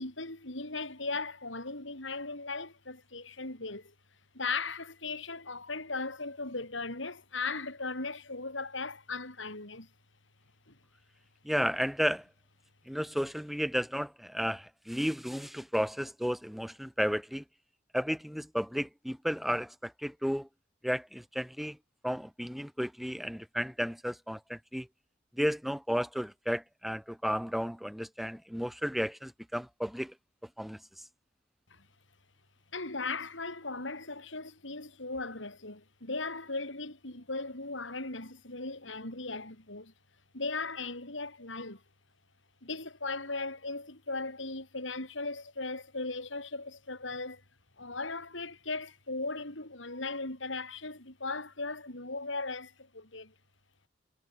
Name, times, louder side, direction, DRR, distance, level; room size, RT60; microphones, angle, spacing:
voice 1, 0.0-3.9 4.3-9.9 10.7-10.8 31.7-31.9 32.7-39.9 40.3-41.8 42.6-47.4 47.8-53.3, left 3 dB, 75° left, 6.2 m, -38 dB
voice 2, 11.4-12.2 12.9-17.4 17.9-20.5 20.8-21.8 22.0-24.9 25.3-30.1 30.6-30.8, equal, ahead, 5.4 m, -33 dB
head